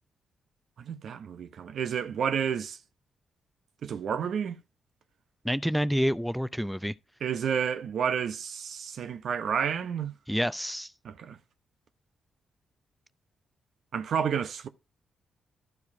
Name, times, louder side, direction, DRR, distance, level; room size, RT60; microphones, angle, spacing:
voice 1, 0.8-2.8 3.8-4.6 7.2-10.1 11.0-11.4 13.9-14.7, right 7 dB, 65° right, 0.8 m, -30 dB
voice 2, 5.4-6.9 10.3-10.9, equal, ahead, 0.6 m, -28 dB
12.0 x 4.8 x 4.7 m
hypercardioid pair, 40°, 0 cm